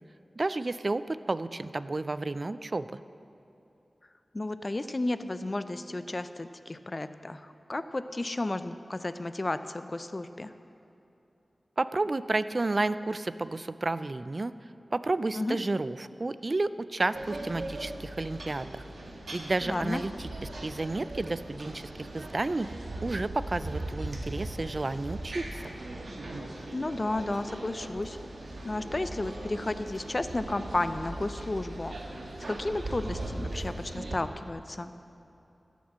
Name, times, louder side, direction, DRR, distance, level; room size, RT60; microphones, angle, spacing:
voice 1, 0.4-3.0 11.8-14.5 14.9-18.8 19.3-22.7 23.0-25.7, right 2 dB, 50° right, 14 dB, 0.4 m, -31 dB
voice 2, 4.3-10.5 15.3-15.6 19.7-20.0 26.7-28.2 28.6-32.0 32.4-34.9, left 2 dB, 40° left, 11 dB, 0.5 m, -33 dB
sound 1, 17.1-34.2, right 2 dB, 80° right, 1.3 m, -39 dB
15.0 x 6.2 x 7.4 m, 2.9 s
cardioid pair, 45°, 0 cm